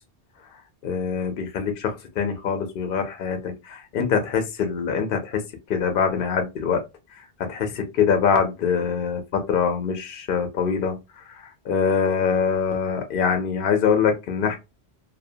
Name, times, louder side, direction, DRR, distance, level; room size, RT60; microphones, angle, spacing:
voice 1, 0.8-5.4 5.7-6.8 7.5-14.6, left 6 dB, 60° left, 5 dB, 0.7 m, -24 dB
2.7 x 2.1 x 2.6 m, 0.24 s
omnidirectional pair, 1.1 m